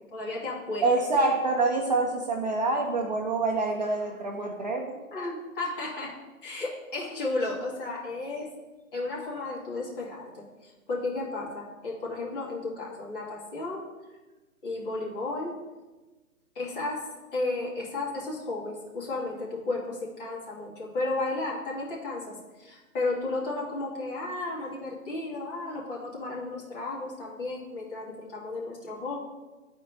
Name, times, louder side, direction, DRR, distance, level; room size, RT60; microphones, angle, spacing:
voice 1, 0.1-0.9 5.1-8.5 8.9-13.9 14.6-15.6 16.5-29.2, left 2 dB, 40° left, -4 dB, 2.4 m, -33 dB
voice 2, 0.8-5.0, right 3 dB, 30° right, 1 dB, 0.6 m, -26 dB
11.5 x 4.3 x 4.0 m, 1.2 s
hypercardioid pair, 150°, 42 cm